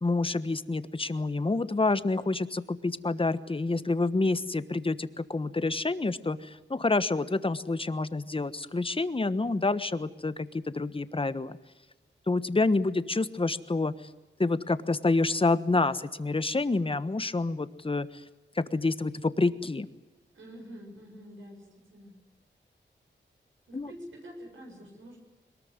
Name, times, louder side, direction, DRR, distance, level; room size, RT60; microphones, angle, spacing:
voice 1, 0.0-11.6 12.3-13.9 14.4-18.1 18.5-19.9 23.7-23.9, left 3 dB, 25° left, 13 dB, 1.3 m, -28 dB
voice 2, 20.3-22.2 23.7-25.2, equal, 85° right, 0 dB, 7.4 m, -47 dB
22.0 x 20.5 x 9.7 m, 1.0 s
wide cardioid pair, 75°, 20 cm